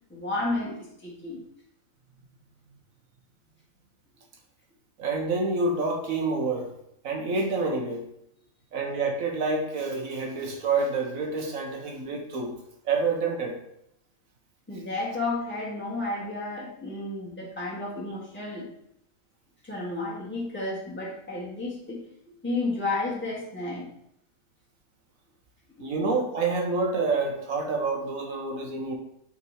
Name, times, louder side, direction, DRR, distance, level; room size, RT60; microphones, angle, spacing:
voice 1, 0.1-0.8 1.0-1.4 14.7-18.7 19.6-23.9, left 2 dB, 10° left, -6 dB, 1.7 m, -32 dB
voice 2, 5.0-6.7 7.0-8.0 8.7-12.5 12.8-13.6 25.8-29.0, right 3 dB, 90° right, 2 dB, 1.6 m, -28 dB
5.9 x 4.4 x 4.6 m, 0.74 s
omnidirectional pair, 1.4 m